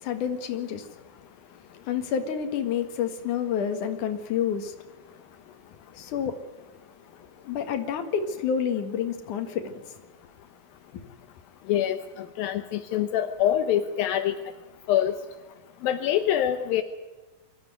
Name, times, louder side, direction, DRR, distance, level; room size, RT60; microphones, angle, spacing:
voice 1, 0.0-0.8 1.9-4.7 5.9-6.3 7.4-9.7, left 8 dB, 65° left, 3.2 m, -28 dB
voice 2, 11.7-14.4 14.9-15.2 15.8-16.8, left 11 dB, 80° left, 2.8 m, -25 dB
24.0 x 14.5 x 9.4 m
omnidirectional pair, 4.1 m